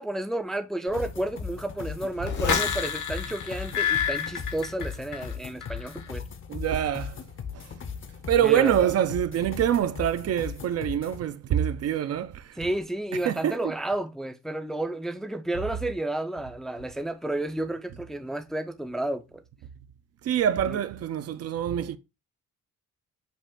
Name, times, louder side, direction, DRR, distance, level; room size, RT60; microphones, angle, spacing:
voice 1, 0.0-6.3 8.4-8.7 12.6-19.4 20.7-20.8, right 1 dB, ahead, 0.4 m, -31 dB
sound 1, 0.9-11.2, left 6 dB, 40° left, 0.7 m, -38 dB
sound 2, 2.2-5.3 5.6-6.0, left 8 dB, 75° left, 1.2 m, -28 dB
voice 2, 6.5-7.2 8.3-12.4 13.3-13.6 20.2-22.0, right 10 dB, 55° right, 0.5 m, -25 dB
5.4 x 2.4 x 3.6 m
cardioid pair, 90°, 30 cm